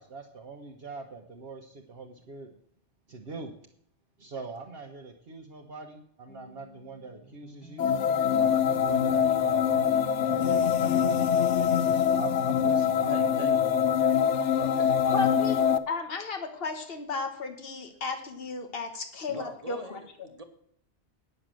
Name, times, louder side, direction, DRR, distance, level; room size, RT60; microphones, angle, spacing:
voice 1, 0.0-2.5 3.1-3.5 4.2-7.9 8.4-9.9 10.2-14.1, right 3 dB, 60° right, 1 dB, 1.2 m, -42 dB
sound 1, 6.3-13.3, right 1 dB, 20° left, 1.2 m, -47 dB
sound 2, 7.8-15.8, left 8 dB, 80° left, 1.0 m, -24 dB
voice 2, 13.1-13.6 14.6-15.2 19.3-20.4, right 2 dB, 35° right, 6 dB, 1.3 m, -43 dB
voice 3, 15.1-20.3, left 4 dB, 55° left, 6 dB, 1.6 m, -34 dB
9.8 x 6.6 x 7.6 m, 0.67 s
omnidirectional pair, 1.2 m